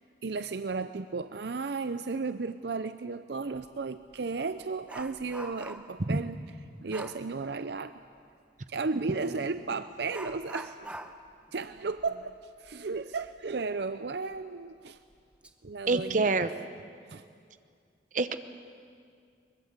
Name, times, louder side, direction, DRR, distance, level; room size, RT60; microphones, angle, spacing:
voice 1, 0.2-6.4 6.8-7.9 8.7-11.0 11.5-12.3 12.6-15.0 15.6-16.5 17.1-17.2, right 4 dB, 65° right, 11 dB, 0.6 m, -34 dB
Dog, 3.5-3.7 4.1-6.0 6.9-7.3 9.2-9.4 10.1-13.4 13.7-13.8 14.3-14.4 15.1-15.5 15.9-16.1, right 1 dB, 5° right, 0.9 m, -45 dB
voice 2, 15.9-16.5 18.1-18.3, right 3 dB, 45° right, 10 dB, 0.9 m, -26 dB
23.0 x 21.0 x 8.1 m, 2.2 s
head